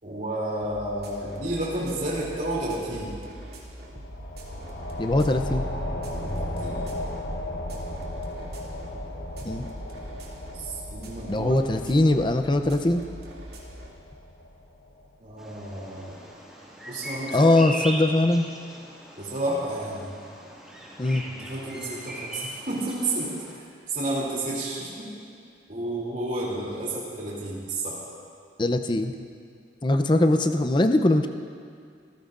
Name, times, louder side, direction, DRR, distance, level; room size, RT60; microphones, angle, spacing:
voice 1, 0.0-3.1 6.1-6.8 10.5-11.6 15.2-16.2 16.9-17.6 19.2-20.1 21.2-25.1 25.7-28.0, right 1 dB, 45° right, -6 dB, 2.9 m, -31 dB
sound 1, 0.6-13.9, equal, 60° right, 2.3 m, -43 dB
sound 2, 3.8-15.1, left 1 dB, 65° left, 1.1 m, -36 dB
voice 2, 5.0-5.7 9.4-9.7 11.3-13.0 17.3-18.5 21.0-21.2 28.6-29.1 29.8-31.3, left 1 dB, 25° left, 7 dB, 0.6 m, -21 dB
Bird vocalization bird call bird song, 15.4-23.5, right 1 dB, 5° right, 2.1 m, -39 dB
26.5 x 15.0 x 2.5 m, 2.3 s
head